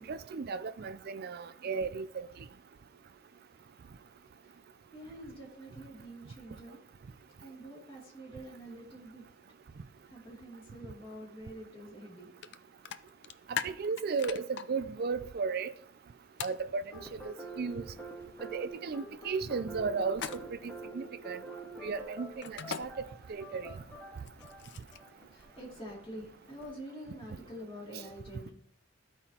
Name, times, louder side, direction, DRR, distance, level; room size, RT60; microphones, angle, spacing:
voice 1, 0.0-2.3 13.6-15.7 16.4-16.8 17.2-17.8 18.5-21.4 21.8-23.7, right 5 dB, 50° right, 0.4 m, -35 dB
voice 2, 4.9-6.8 7.4-9.2 10.1-12.3 20.4-21.1 21.6-21.7 25.3-28.5, equal, 30° left, 2.5 m, -47 dB
sound 1, 12.4-12.6 12.9-14.6 16.4-16.6 20.1-20.7 22.4-22.8 24.2-25.1, left 8 dB, 60° left, 0.4 m, -38 dB
sound 2, 16.9-26.7, right 2 dB, 10° left, 1.6 m, -47 dB
14.0 x 4.8 x 2.9 m
head